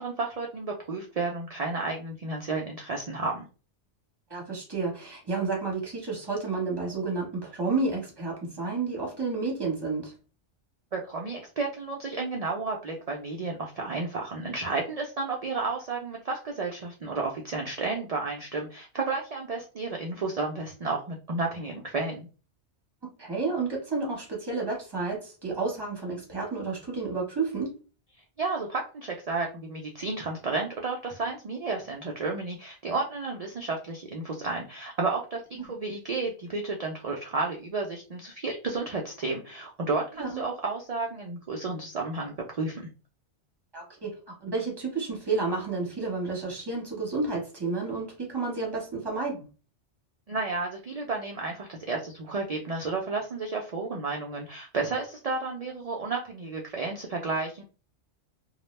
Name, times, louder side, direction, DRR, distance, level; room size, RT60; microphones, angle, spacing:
voice 1, 0.0-3.5 10.9-22.3 28.4-42.9 50.3-57.6, right 3 dB, 70° right, 0 dB, 0.3 m, -32 dB
voice 2, 4.3-10.1 23.2-27.8 35.5-35.7 40.2-40.4 43.7-49.4, right 3 dB, 20° right, -1 dB, 1.0 m, -31 dB
2.3 x 2.0 x 3.1 m, 0.35 s
omnidirectional pair, 1.2 m